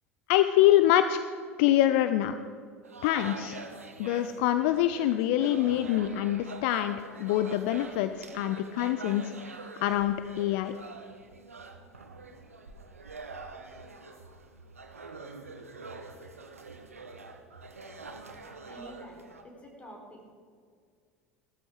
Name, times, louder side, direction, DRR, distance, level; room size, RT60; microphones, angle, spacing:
voice 1, 0.3-1.2 1.6-2.3 3.0-3.6 4.0-10.7, left 13 dB, 55° left, 11 dB, 0.5 m, -25 dB
sound 1, 2.8-19.4, right 3 dB, 80° right, 1.2 m, -45 dB
voice 2, 18.7-20.2, equal, 15° left, 0 dB, 4.3 m, -48 dB
16.5 x 13.5 x 4.7 m, 2.1 s
figure-of-eight pair, 75°, 7 cm